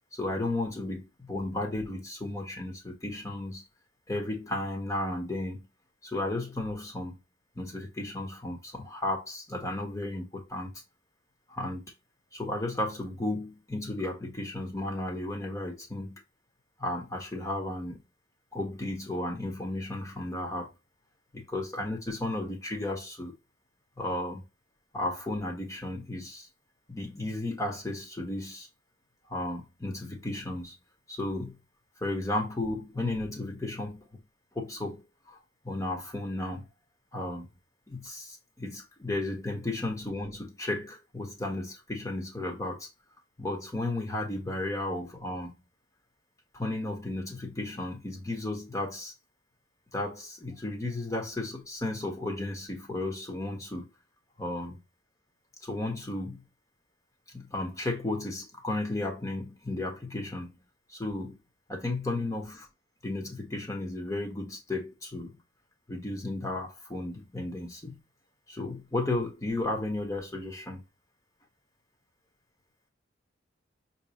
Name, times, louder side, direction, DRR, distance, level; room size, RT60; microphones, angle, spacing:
voice 1, 0.1-3.6 4.1-5.6 6.0-7.2 7.6-10.7 11.5-11.8 12.3-16.2 16.8-18.0 18.5-20.7 21.3-23.3 24.0-24.4 24.9-26.5 26.9-28.7 29.3-30.7 31.1-31.6 32.0-34.2 34.5-35.0 35.3-35.4 35.6-36.7 37.1-37.5 37.9-42.9 43.4-45.5 46.5-49.1 49.9-53.9 54.4-54.8 55.6-56.4 57.3-60.5 60.9-61.4 61.7-62.7 63.0-65.3 65.9-68.0 68.5-70.8, left 2 dB, 15° left, 1.1 m, -34 dB
5.8 x 2.8 x 2.9 m
head